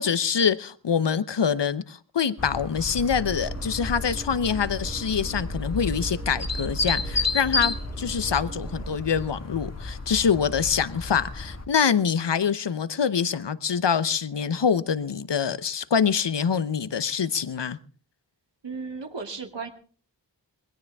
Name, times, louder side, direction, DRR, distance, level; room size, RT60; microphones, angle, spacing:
voice 1, 0.0-17.8, left 7 dB, 70° left, 1.0 m, -25 dB
sound 1, 2.4-11.7, left 3 dB, 35° left, 1.8 m, -32 dB
sound 2, 2.8-9.0, right 4 dB, 15° right, 0.9 m, -38 dB
voice 2, 18.6-19.7, right 4 dB, 75° right, 2.4 m, -35 dB
20.5 x 17.0 x 3.6 m
wide cardioid pair, 50°, 43 cm